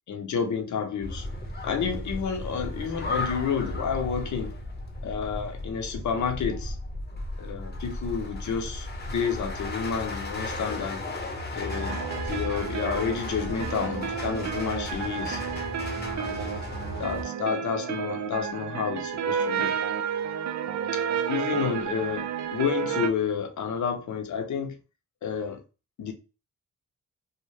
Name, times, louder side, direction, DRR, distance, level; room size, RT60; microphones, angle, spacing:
voice 1, 0.1-1.3 1.6-4.6 5.0-6.8 7.4-11.0 11.5-15.4 16.1-16.5 17.0-19.7 20.9-24.8 25.2-25.6 26.0-26.1, left 6 dB, 80° left, 0.7 m, -30 dB
sound 1, 1.0-17.2, left 2 dB, 35° left, 0.7 m, -35 dB
sound 2, 11.7-23.1, right 7 dB, 70° right, 0.4 m, -31 dB
2.7 x 2.1 x 3.2 m
wide cardioid pair, 95°, 29 cm